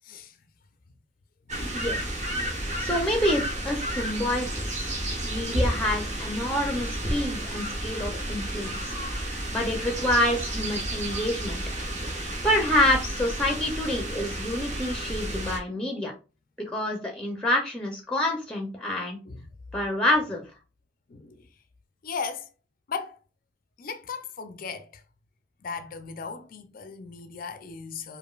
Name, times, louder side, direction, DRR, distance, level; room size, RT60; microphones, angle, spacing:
voice 1, 0.0-0.4 1.5-1.8 2.2-2.3 6.2-6.3 19.3-19.4 21.1-21.5 22.0-22.5 22.9-23.2 23.8-25.0 25.6-28.2, left 5 dB, 50° left, 0.4 m, -38 dB
sound 1, 1.5-15.6, right 1 dB, 40° right, 1.1 m, -31 dB
voice 2, 2.8-4.9 5.2-8.9 9.5-11.6 12.4-16.1 16.6-19.2 19.7-20.4, left 1 dB, 5° left, 0.6 m, -27 dB
4.9 x 2.5 x 2.3 m
head